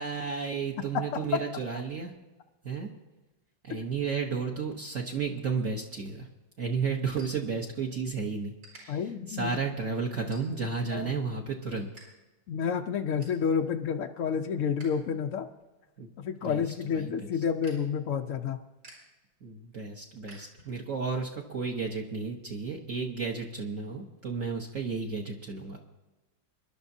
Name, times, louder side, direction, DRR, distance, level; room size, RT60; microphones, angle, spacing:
voice 1, 0.0-2.1 2.6-2.9 3.6-6.3 6.6-9.0 9.3-11.9 16.0-16.1 16.4-16.6 16.9-17.3 19.4-25.8, right 5 dB, 50° right, -1 dB, 1.3 m, -33 dB
voice 2, 0.9-1.4 8.9-9.6 10.9-11.2 12.5-15.5 16.2-18.6, left 7 dB, 75° left, 5 dB, 0.7 m, -30 dB
sound 1, 6.1-8.1 8.4-8.8 9.4-9.6 10.1-10.8 11.2-12.1 12.3-12.4 12.8-13.4 13.9-14.9 15.2-21.0, right 2 dB, 65° right, 5.3 m, -55 dB
24.5 x 11.5 x 2.7 m, 1.1 s
omnidirectional pair, 2.1 m